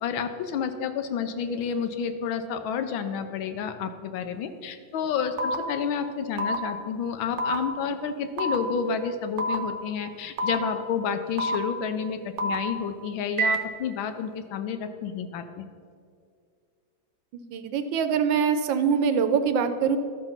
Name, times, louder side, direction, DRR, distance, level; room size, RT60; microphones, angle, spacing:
voice 1, 0.0-15.7, left 6 dB, 80° left, 8 dB, 1.5 m, -30 dB
sound 1, 5.4-5.5 6.4-6.5 7.4-7.6 8.4-8.6 9.4-9.6 10.4-10.6 11.4-11.5 12.4-12.5 13.4-13.5, right 1 dB, 55° right, 0.8 m, -26 dB
voice 2, 17.3-20.0, right 6 dB, 80° right, 9 dB, 1.3 m, -24 dB
13.0 x 5.0 x 5.7 m, 2.1 s
omnidirectional pair, 2.2 m